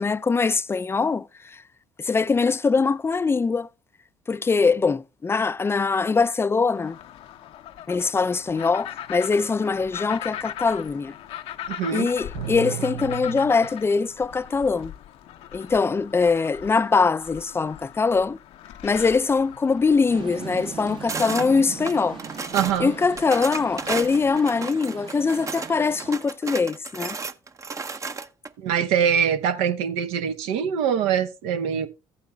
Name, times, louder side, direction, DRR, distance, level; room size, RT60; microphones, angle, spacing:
voice 1, 0.0-1.6 2.0-3.7 4.3-7.0 7.9-11.1 11.9-14.9 15.5-18.4 18.8-22.2 22.8-27.2, left 4 dB, 20° left, 0.4 m, -22 dB
sound 1, 6.7-24.4, left 11 dB, 70° left, 0.7 m, -40 dB
voice 2, 11.7-12.1 12.3-13.2 22.5-22.9 28.6-31.9, right 8 dB, 80° right, 0.9 m, -24 dB
sound 2, 20.1-26.2, right 7 dB, 50° right, 1.0 m, -39 dB
sound 3, 21.1-21.5 21.9-22.8 23.2-25.7 26.0-28.5, right 4 dB, 30° right, 0.7 m, -33 dB
14.5 x 8.3 x 2.2 m
hypercardioid pair, 65°, 11 cm